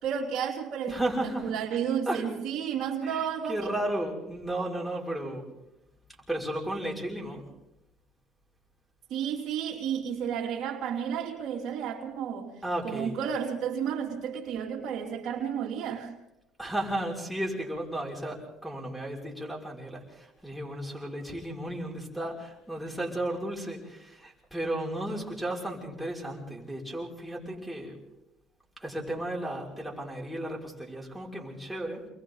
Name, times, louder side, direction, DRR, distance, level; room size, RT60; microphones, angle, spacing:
voice 1, 0.0-3.7 9.1-12.5 12.8-16.1, right 8 dB, 65° right, 3.2 m, -32 dB
voice 2, 0.9-1.5 2.1-2.2 3.0-5.5 6.3-7.4 12.6-13.1 16.6-28.0 28.8-32.0, right 1 dB, 5° right, 5.9 m, -34 dB
29.0 x 22.0 x 4.1 m
cardioid pair, 100°, 0 cm